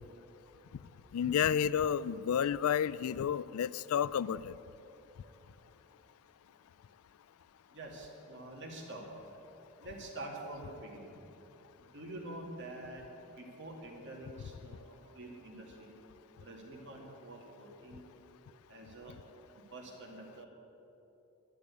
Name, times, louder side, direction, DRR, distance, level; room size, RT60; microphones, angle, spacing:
voice 1, 1.1-4.5, left 8 dB, 75° left, 19 dB, 0.3 m, -31 dB
voice 2, 7.7-9.0 9.8-11.1 11.9-13.0 13.4-15.9 16.4-18.1 18.7-19.2 19.7-20.5, right 2 dB, 55° right, 0 dB, 2.4 m, -46 dB
12.0 x 9.9 x 8.4 m, 3.0 s
head